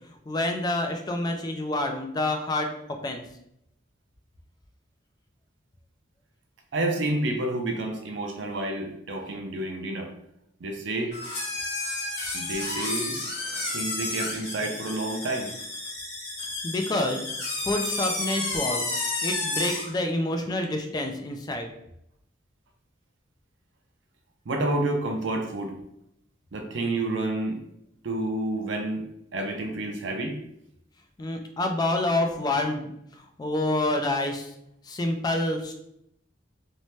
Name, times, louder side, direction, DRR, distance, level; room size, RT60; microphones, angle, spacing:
voice 1, 0.1-3.2 16.6-17.3 17.5-18.8 19.2-21.7 31.2-34.5 34.8-35.7, left 2 dB, 20° left, 4 dB, 0.3 m, -28 dB
voice 2, 6.7-10.1 10.6-11.1 12.3-13.2 13.7-15.5 24.5-25.7 26.5-27.6 28.0-29.0 29.3-30.4, right 2 dB, 75° right, 3 dB, 0.5 m, -29 dB
sound 1, 11.1-19.9, left 2 dB, 60° left, 0.9 m, -31 dB
2.7 x 2.1 x 3.1 m, 0.76 s
head